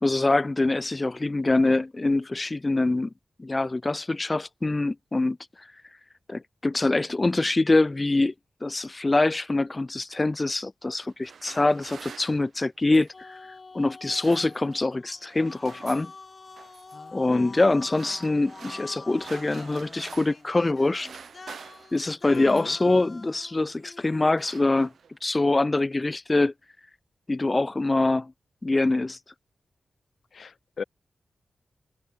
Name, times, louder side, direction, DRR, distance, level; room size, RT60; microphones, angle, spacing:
voice 1, 0.0-3.1 3.4-5.4 6.3-8.3 8.6-13.4 13.7-16.1 17.1-21.1 21.9-24.9 25.2-26.5 27.3-28.3 28.6-29.2, left 2 dB, 30° left, 1.0 m, -24 dB
sound 1, 11.0-13.2 13.9-14.9 15.2-16.1 16.6-17.0 17.7-20.5 20.7-22.9 23.6-23.9 24.1-25.2, right 6 dB, 85° right, 4.8 m, -47 dB
sound 2, 13.1-24.3, left 3 dB, 45° left, 4.1 m, -46 dB
voice 2, 22.3-22.7 30.3-30.8, left 5 dB, 70° left, 0.5 m, -36 dB
cardioid pair, 70°, 0 cm